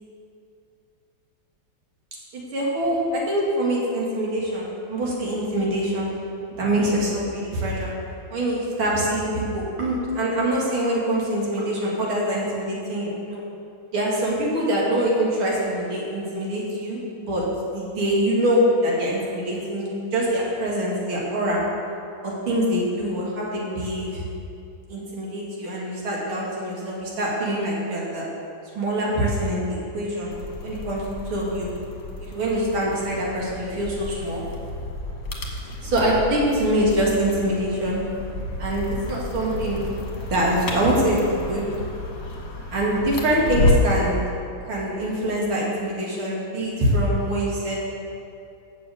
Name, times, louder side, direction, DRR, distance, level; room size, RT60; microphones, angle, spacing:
voice 1, 2.3-6.1 6.5-7.9 8.3-13.4 13.9-17.4 17.7-21.6 22.2-24.2 24.9-28.3 28.7-30.3 30.6-31.7 32.2-34.4 35.8-38.0 38.6-41.7 42.7-44.2 44.7-47.7, right 1 dB, 85° right, -4 dB, 2.8 m, -24 dB
sound 1, 30.3-44.0, left 1 dB, 45° left, 1.5 m, -30 dB
7.3 x 6.8 x 7.7 m, 2.6 s
omnidirectional pair, 2.3 m